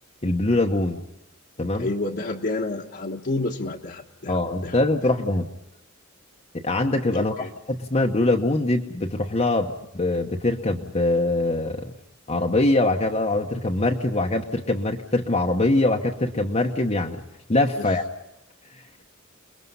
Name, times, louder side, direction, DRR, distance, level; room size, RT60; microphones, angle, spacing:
voice 1, 0.2-1.0 1.6-1.9 4.3-5.5 6.6-11.9 12.3-17.2 17.5-18.0, left 2 dB, 30° left, 1 dB, 1.0 m, -23 dB
voice 2, 1.8-4.8 7.1-7.5 17.8-17.9, left 2 dB, 50° left, -2 dB, 1.3 m, -30 dB
29.5 x 21.5 x 5.5 m, 0.87 s
head